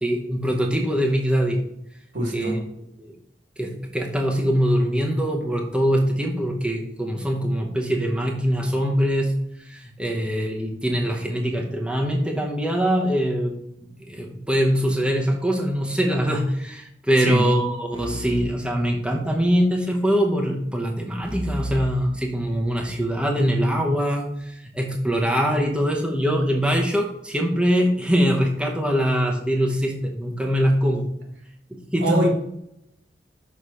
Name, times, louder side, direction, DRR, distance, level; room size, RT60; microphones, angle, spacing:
voice 1, 0.0-1.6 2.3-2.6 3.0-3.1 3.6-9.3 9.6-13.5 13.8-31.1 31.7-32.3, equal, 5° right, -1 dB, 0.8 m, -23 dB
voice 2, 2.1-2.6 17.2-17.5 32.0-32.3, equal, 80° right, 1 dB, 1.7 m, -23 dB
sound 1, 17.9-19.5 21.2-23.0, equal, 30° right, 1.0 m, -35 dB
6.4 x 3.8 x 5.5 m, 0.78 s
head